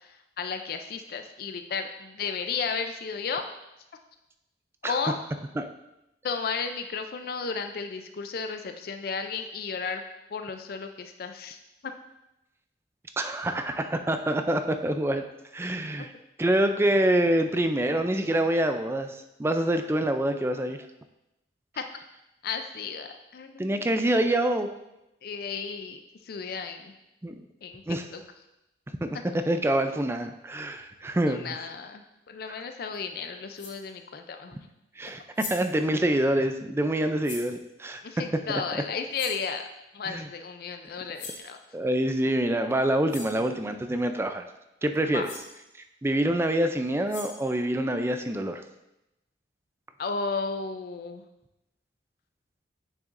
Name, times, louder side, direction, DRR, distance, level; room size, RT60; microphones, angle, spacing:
voice 1, 0.0-3.4 4.8-5.2 6.2-10.0 10.3-11.9 16.0-16.1 21.8-21.9 22.4-24.1 25.2-26.9 27.6-27.8 28.1-28.2 31.2-34.7 38.0-39.6 39.9-41.6 45.1-45.3 50.0-51.2, left 5 dB, 55° left, 7 dB, 0.4 m, -34 dB
voice 2, 13.2-15.2 15.5-16.1 16.4-20.8 23.6-24.7 27.2-27.3 27.9-28.0 29.0-29.1 29.3-31.6 35.0-38.0 40.1-40.3 41.7-44.4 44.8-45.3 46.0-48.6, right 1 dB, 15° right, 7 dB, 0.4 m, -26 dB
sound 1, 32.9-33.0 33.5-33.9 35.1-35.2 35.3-35.8 37.2-37.5 39.1-39.5 41.1-41.5 42.7-42.8 43.1-43.4 44.9-45.0 45.2-45.5 46.9-47.5, left 3 dB, 80° left, 2.4 m, -41 dB
8.9 x 6.3 x 2.5 m, 0.91 s
head